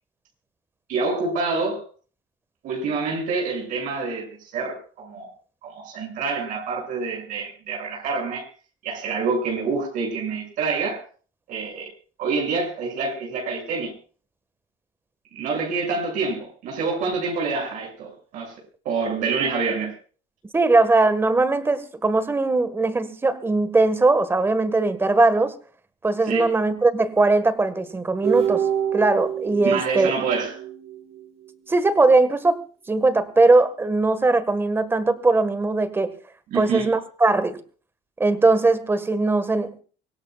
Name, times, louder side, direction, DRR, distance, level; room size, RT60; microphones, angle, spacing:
voice 1, 0.9-1.8 2.6-5.3 5.6-8.5 8.8-11.0 11.5-11.9 12.2-13.9 15.3-18.5 18.8-19.9 26.3-26.5 29.6-30.6 36.5-36.9, right 4 dB, 60° right, 1 dB, 7.2 m, -27 dB
voice 2, 20.5-25.5 26.0-28.6 28.9-30.1 31.7-32.6 32.9-36.1 36.5-37.6 38.2-39.8, right 3 dB, 15° right, 13 dB, 1.7 m, -20 dB
sound 1, 28.2-31.5, right 9 dB, 40° right, 1.6 m, -27 dB
25.0 x 17.0 x 2.4 m, 0.39 s
cardioid pair, 130°, 15 cm